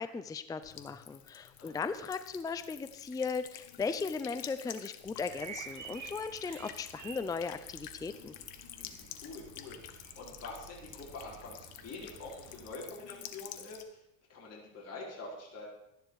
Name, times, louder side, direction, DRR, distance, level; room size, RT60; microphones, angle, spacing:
voice 1, 0.0-8.3, left 5 dB, 10° left, 11 dB, 0.5 m, -37 dB
Buzz / Water tap faucet / Trickle dribble, 0.6-13.8, left 11 dB, 55° left, 1.3 m, -50 dB
voice 2, 1.6-1.9 8.8-14.0 14.3-15.7, left 3 dB, 35° left, -4 dB, 4.5 m, -46 dB
sound 1, 5.3-12.7, right 7 dB, 40° right, 1.6 m, -51 dB
12.5 x 10.5 x 4.8 m, 0.82 s
supercardioid pair, 110°, 43 cm